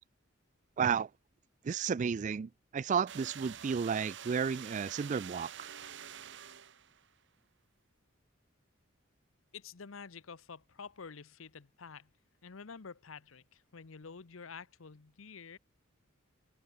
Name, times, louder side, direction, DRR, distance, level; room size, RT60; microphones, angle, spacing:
voice 1, 0.8-1.1 1.6-5.7, right 6 dB, 35° right, 0.3 m, -32 dB
sound 1, 3.1-7.1, right 9 dB, 60° right, 1.4 m, -47 dB
voice 2, 9.5-12.1 12.4-15.6, left 5 dB, 80° left, 0.9 m, -49 dB
head